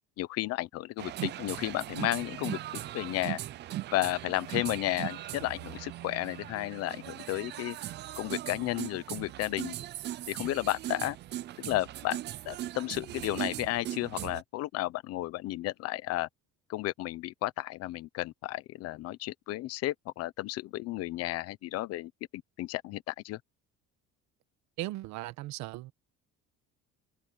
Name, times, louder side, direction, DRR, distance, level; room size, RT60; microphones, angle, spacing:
voice 1, 0.2-3.4 3.9-7.8 8.2-9.7 10.3-11.2 11.6-12.2 12.4-16.3 16.7-23.4, left 17 dB, 55° left, 1.0 m, -33 dB
sound 1, 1.0-14.4, right 14 dB, 35° right, 0.5 m, -39 dB
voice 2, 24.8-25.9, right 17 dB, 70° right, 1.2 m, -37 dB
cardioid pair, 175°, 30 cm